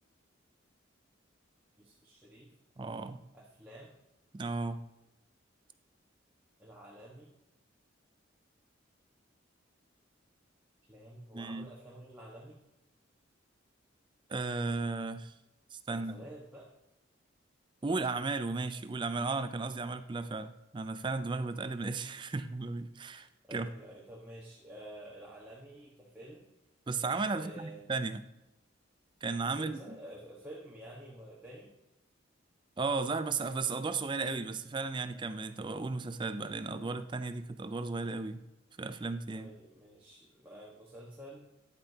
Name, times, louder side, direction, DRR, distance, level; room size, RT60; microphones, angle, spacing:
voice 1, 1.8-2.5 3.3-3.9 6.6-7.3 10.9-12.6 15.9-16.7 23.4-26.5 27.4-27.9 29.4-31.7 39.3-41.5, right 1 dB, 10° right, 1.3 m, -50 dB
voice 2, 2.8-3.2 4.3-4.8 11.3-11.7 14.3-15.3 15.7-16.2 17.8-23.7 26.9-28.2 29.2-29.8 32.8-38.4 38.8-39.5, right 3 dB, 25° right, 0.4 m, -35 dB
9.8 x 8.7 x 2.8 m
head